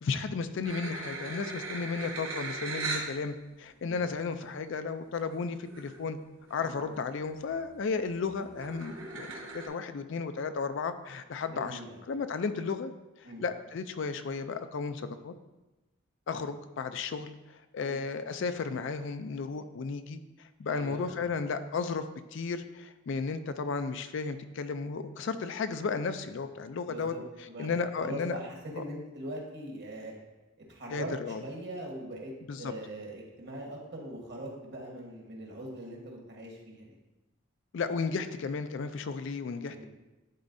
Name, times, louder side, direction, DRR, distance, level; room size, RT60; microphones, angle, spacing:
voice 1, 0.0-6.2 6.5-9.3 9.5-11.8 12.1-12.9 13.4-15.3 16.3-17.3 17.7-22.0 22.3-27.1 27.6-28.4 28.8-28.9 30.9-31.4 32.5-32.7 37.7-39.9, left 4 dB, 60° left, 10 dB, 0.4 m, -34 dB
sound 1, 0.6-3.1 3.8-3.9 5.3-5.4 5.7-6.1 6.4-7.0 7.4-9.7, right 3 dB, 70° right, 1.1 m, -39 dB
voice 2, 6.5-6.9 11.5-12.0 13.2-13.4 17.8-18.0 20.7-21.3 26.8-27.7 28.0-30.1 30.7-36.9 39.7-39.9, right 1 dB, 55° right, 0 dB, 1.3 m, -42 dB
10.5 x 4.1 x 2.6 m, 1.1 s
head